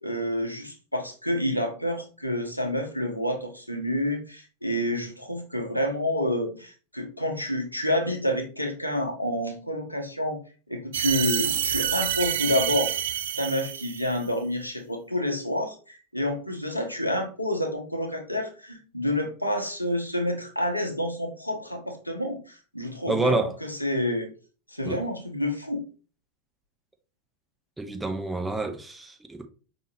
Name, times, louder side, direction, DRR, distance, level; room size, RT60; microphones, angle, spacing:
voice 1, 0.0-10.4 10.7-12.9 13.4-24.3 24.7-25.8, left 1 dB, 90° left, 1.0 m, -28 dB
sound 1, 10.9-14.3, right 10 dB, 60° right, 0.3 m, -28 dB
voice 2, 23.1-23.5 24.8-25.0 27.8-29.5, right 2 dB, 5° right, 0.6 m, -28 dB
5.3 x 3.0 x 3.0 m
figure-of-eight pair, 90°, 0 cm